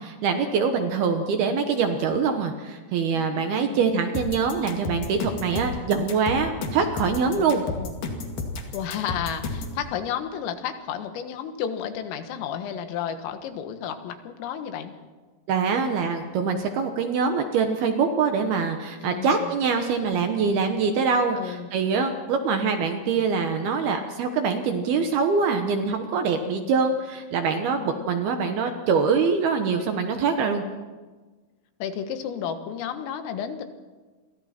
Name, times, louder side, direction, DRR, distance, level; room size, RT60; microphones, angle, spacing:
voice 1, 0.2-7.6 15.5-30.6, right 5 dB, 70° right, 5 dB, 2.5 m, -24 dB
voice 2, 3.1-3.8 7.3-7.9 8.7-14.9 19.0-19.6 21.3-21.7 27.7-28.1 31.8-33.6, left 8 dB, 90° left, 8 dB, 4.1 m, -32 dB
sound 1, 4.1-9.8, left 3 dB, 50° left, 3.3 m, -32 dB
30.0 x 23.5 x 4.4 m, 1.3 s
omnidirectional pair, 5.7 m